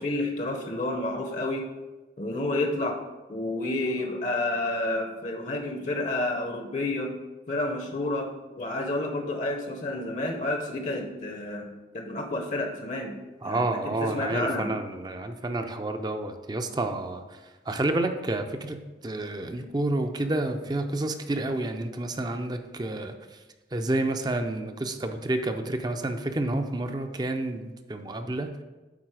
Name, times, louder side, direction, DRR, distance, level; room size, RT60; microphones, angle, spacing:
voice 1, 0.0-1.7 2.2-3.0 3.3-7.2 7.5-13.2 13.4-14.7, left 2 dB, 40° left, 4 dB, 0.7 m, -30 dB
voice 2, 13.4-17.2 17.7-23.1 23.7-28.5, right 2 dB, 25° right, 6 dB, 0.5 m, -29 dB
8.8 x 4.1 x 4.8 m, 1.2 s
head